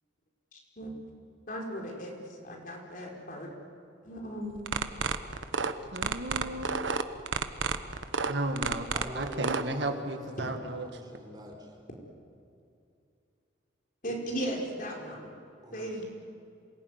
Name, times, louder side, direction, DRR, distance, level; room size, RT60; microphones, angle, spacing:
voice 1, 0.5-0.9 1.5-3.5 4.0-4.6 14.0-15.3 15.7-16.0, equal, 45° left, 0 dB, 4.9 m, -37 dB
sound 1, 4.6-9.6, right 5 dB, 85° right, 1.2 m, -30 dB
voice 2, 5.9-6.7 8.3-8.9 9.2-11.0, right 2 dB, 65° right, 6 dB, 2.0 m, -34 dB
voice 3, 8.9-11.7 15.6-16.0, equal, 20° right, 1 dB, 4.6 m, -45 dB
27.0 x 19.0 x 9.7 m, 2.6 s
head